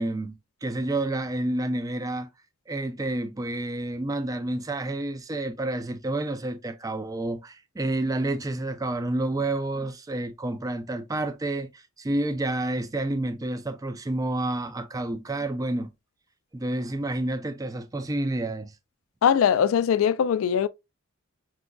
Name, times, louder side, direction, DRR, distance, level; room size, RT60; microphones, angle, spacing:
voice 1, 0.0-2.3 2.7-15.9 16.5-18.7, right 2 dB, 15° right, 0.3 m, -29 dB
voice 2, 19.2-20.7, left 8 dB, 70° left, 0.3 m, -21 dB
6.0 x 2.4 x 2.2 m
head